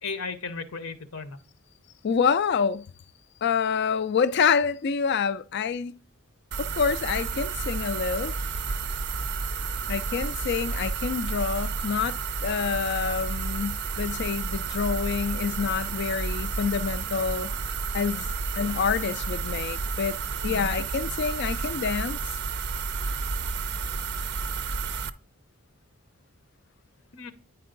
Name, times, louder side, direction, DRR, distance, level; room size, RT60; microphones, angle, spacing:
voice 1, 0.0-1.4 20.5-20.7 27.1-27.3, left 4 dB, 70° left, 0.8 m, -35 dB
voice 2, 2.0-2.9 3.4-5.9 6.6-8.3 9.9-17.5 17.9-18.3 18.6-20.2 20.4-22.2, left 6 dB, 50° left, 0.3 m, -27 dB
sound 1, 6.5-25.1, right 5 dB, 50° right, 0.4 m, -31 dB
9.4 x 4.4 x 3.9 m
head